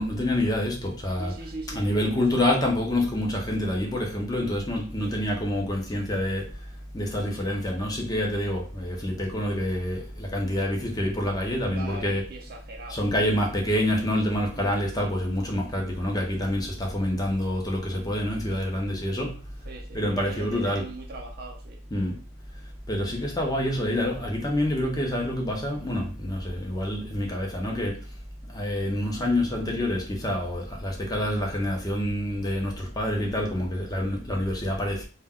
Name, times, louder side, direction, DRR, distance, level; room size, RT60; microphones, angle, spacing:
voice 1, 0.0-1.3 1.7-12.2 12.9-19.4 19.9-20.8 21.9-22.2 22.9-28.2 28.5-35.1, left 1 dB, 20° left, 0.5 m, -27 dB
voice 2, 1.2-2.4 5.0-5.2 11.7-13.4 14.5-14.7 19.6-21.9, right 2 dB, 50° right, 0.5 m, -41 dB
2.2 x 2.1 x 3.4 m
head